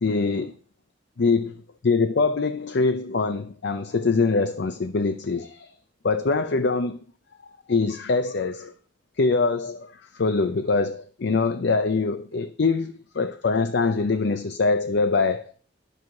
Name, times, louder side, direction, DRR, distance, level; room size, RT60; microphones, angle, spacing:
voice 1, 0.0-0.5 1.2-1.5 1.8-5.7 6.0-7.0 7.7-8.7 9.2-15.5, left 4 dB, 60° left, 0.5 m, -23 dB
12.0 x 4.7 x 5.9 m
head